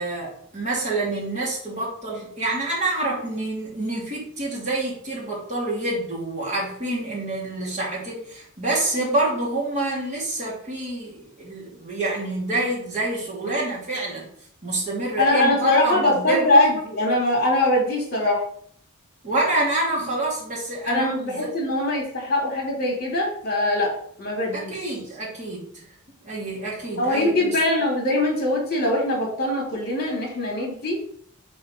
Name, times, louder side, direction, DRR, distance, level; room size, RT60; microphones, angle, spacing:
voice 1, 0.0-14.3 14.6-16.6 19.2-21.5 24.5-25.7 26.2-27.6, right 2 dB, 35° right, -5 dB, 2.6 m, -27 dB
voice 2, 15.2-18.4 20.8-23.9 24.2-24.9 27.0-30.9, left 2 dB, 45° left, -1 dB, 2.8 m, -22 dB
5.4 x 4.6 x 5.1 m, 0.63 s
head